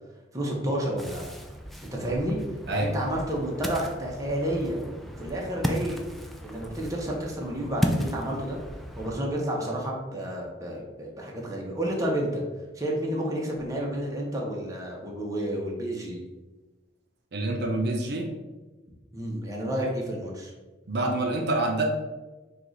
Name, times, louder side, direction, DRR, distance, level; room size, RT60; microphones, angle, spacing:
voice 1, 0.3-1.3 1.9-2.4 2.7-4.8 5.2-6.0 6.4-8.6 9.0-12.4 12.8-16.2 19.1-20.5, right 1 dB, 20° right, -2 dB, 0.9 m, -30 dB
Ocean, 1.0-9.1, equal, ahead, 0.3 m, -34 dB
voice 2, 17.3-18.3 20.9-21.9, right 2 dB, 60° right, 2 dB, 0.6 m, -26 dB
4.7 x 2.4 x 3.9 m, 1.2 s
head